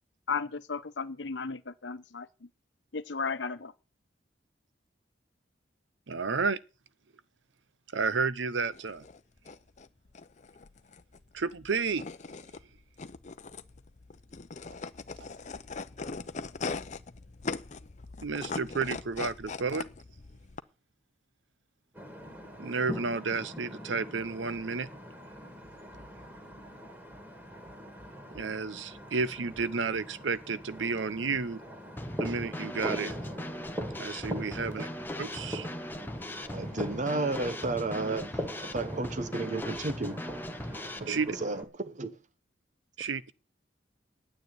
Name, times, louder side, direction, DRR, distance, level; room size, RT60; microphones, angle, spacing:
voice 1, 0.3-2.5 2.9-3.7, left 5 dB, 75° left, 1.0 m, -35 dB
voice 2, 6.1-6.6 7.9-9.0 11.3-12.0 18.2-19.9 22.6-24.9 28.3-31.6 32.2-33.2 34.0-34.9 35.2-35.7 41.1-41.3 43.0-43.3, right 4 dB, 85° right, 0.7 m, -31 dB
sound 1, 8.6-20.6, left 4 dB, 40° left, 0.7 m, -41 dB
sound 2, 21.9-41.6, equal, 10° right, 2.5 m, -42 dB
Drum kit / Snare drum, 32.0-41.0, left 1 dB, 10° left, 1.0 m, -39 dB
voice 3, 36.5-38.4 38.7-40.2 41.0-42.2 43.0-43.1, right 3 dB, 40° right, 1.0 m, -33 dB
9.4 x 9.1 x 9.5 m
head